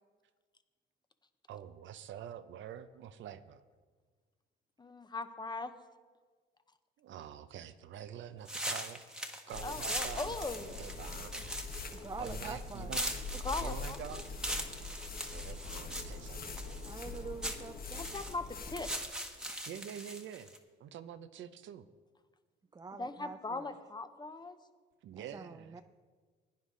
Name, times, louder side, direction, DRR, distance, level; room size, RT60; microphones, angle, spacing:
voice 1, 1.5-3.6 7.0-9.0 9.5-11.9 12.2-13.2 13.6-14.4 15.3-16.8 17.1-17.2 19.7-20.5 20.8-21.8 25.0-25.8, right 9 dB, 75° right, 12 dB, 0.6 m, -47 dB
voice 2, 4.8-5.7 9.6-10.8 13.4-14.2 18.0-19.5 23.0-24.6, left 3 dB, 20° left, 10 dB, 0.8 m, -40 dB
sound 1, 8.5-20.6, right 1 dB, 5° right, 1.2 m, -41 dB
sound 2, 9.5-19.1, left 3 dB, 50° left, 1.2 m, -43 dB
voice 3, 11.9-13.0 16.8-18.2 22.7-23.8 25.1-25.8, right 4 dB, 20° right, 8 dB, 0.4 m, -46 dB
16.0 x 9.8 x 3.8 m, 1.5 s
cardioid pair, 90°, 20 cm